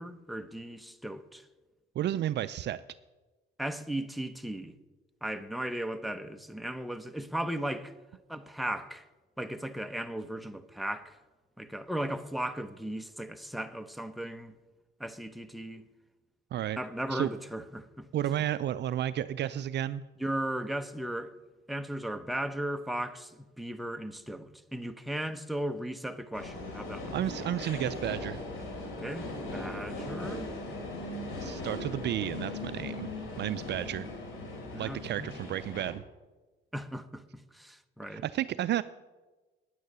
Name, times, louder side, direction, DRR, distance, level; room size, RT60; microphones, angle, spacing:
voice 1, 0.0-1.5 3.6-4.7 5.2-7.9 8.3-9.1 9.4-11.2 11.6-14.5 15.0-15.8 16.8-18.1 20.2-21.3 21.7-27.2 28.8-30.5 34.7-35.3 36.7-38.2, right 1 dB, ahead, 0.8 m, -36 dB
voice 2, 2.0-2.8 16.5-16.8 17.1-17.3 18.1-20.0 27.1-28.4 31.4-33.1 33.4-34.1 34.8-36.0 38.1-38.8, right 12 dB, 60° right, 0.4 m, -32 dB
sound 1, 26.3-35.9, left 2 dB, 85° left, 3.7 m, -39 dB
9.9 x 9.4 x 6.7 m
cardioid pair, 90°, 20 cm